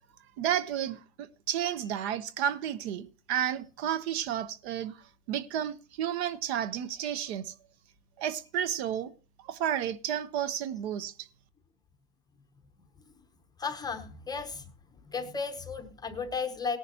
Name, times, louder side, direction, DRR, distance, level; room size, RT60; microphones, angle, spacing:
voice 1, 0.4-5.0 5.3-7.5 8.2-9.1 9.5-11.3, right 10 dB, 50° right, 1.0 m, -32 dB
voice 2, 13.6-14.7 15.0-16.8, left 5 dB, 10° left, 0.8 m, -34 dB
18.0 x 10.5 x 2.9 m
supercardioid pair, 150°, 40 cm